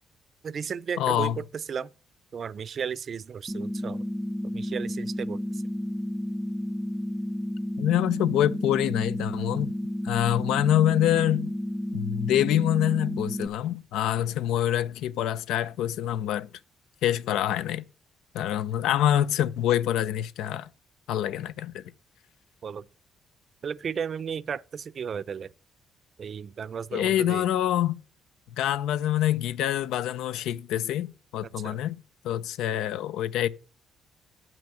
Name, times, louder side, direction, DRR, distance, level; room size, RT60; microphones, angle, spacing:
voice 1, 0.4-1.9 2.3-4.1 4.4-5.6 22.6-22.9 23.6-25.5 26.2-27.5 31.5-31.8, right 7 dB, 50° right, 0.5 m, -34 dB
voice 2, 1.0-1.4 7.8-9.7 10.0-11.5 11.9-16.5 17.0-17.8 18.3-20.7 21.1-21.8 26.9-28.0 28.6-32.0 32.2-33.5, left 11 dB, 90° left, 0.6 m, -26 dB
sound 1, 3.5-13.5, equal, 5° right, 0.6 m, -32 dB
8.9 x 6.0 x 7.6 m
cardioid pair, 90°, 0 cm